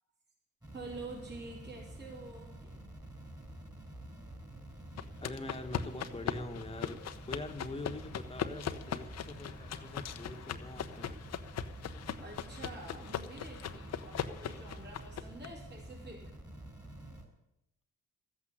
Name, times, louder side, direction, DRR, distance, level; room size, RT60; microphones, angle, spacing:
sound 1, 0.6-17.2, right 1 dB, 15° right, 3.8 m, -49 dB
voice 1, 0.7-2.7 12.2-16.3, right 2 dB, 35° right, -5 dB, 4.8 m, -47 dB
sound 2, 5.0-15.5, left 8 dB, 60° left, 1.0 m, -40 dB
voice 2, 5.2-11.2, left 2 dB, 20° left, 6 dB, 1.6 m, -44 dB
13.5 x 8.4 x 9.9 m, 0.88 s
cardioid pair, 90°, 30 cm